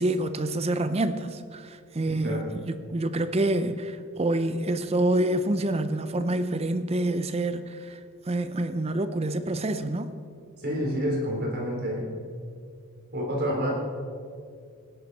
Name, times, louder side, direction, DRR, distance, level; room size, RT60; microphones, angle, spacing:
voice 1, 0.0-8.0 8.3-10.1, right 1 dB, 30° right, 0.6 m, -27 dB
voice 2, 2.1-2.4 10.6-12.1 13.1-13.7, equal, 45° right, 3.6 m, -28 dB
18.0 x 11.0 x 4.1 m
head